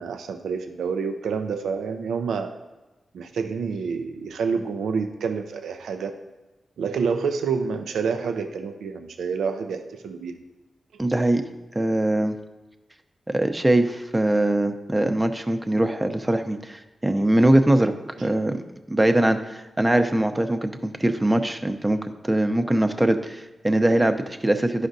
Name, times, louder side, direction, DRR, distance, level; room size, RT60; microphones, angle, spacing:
voice 1, 0.0-2.5 3.1-6.1 6.8-10.4 18.2-18.4, right 5 dB, 85° right, 6 dB, 0.4 m, -28 dB
voice 2, 11.0-11.4 11.7-12.3 13.3-17.9 18.2-18.6 18.9-24.9, right 1 dB, 20° right, 7 dB, 0.7 m, -22 dB
11.5 x 5.0 x 2.6 m, 1.1 s
supercardioid pair, 40°, 0 cm